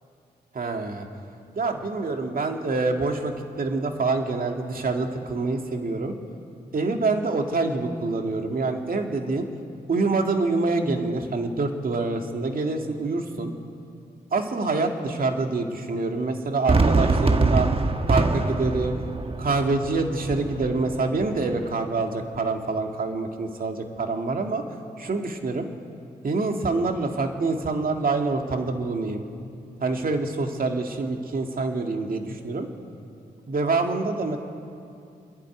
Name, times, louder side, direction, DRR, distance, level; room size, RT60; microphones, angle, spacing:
voice 1, 0.5-1.1 1.5-6.1 6.7-9.5 9.9-13.5 14.3-17.7 18.1-19.0 19.4-24.6 25.0-25.7 26.2-29.2 29.8-32.7 33.5-34.4, right 3 dB, 55° right, 3 dB, 2.3 m, -26 dB
Fireworks, 16.7-21.7, right 3 dB, 30° right, 1.3 m, -24 dB
26.5 x 11.0 x 9.3 m, 2.5 s
cardioid pair, 55°, 18 cm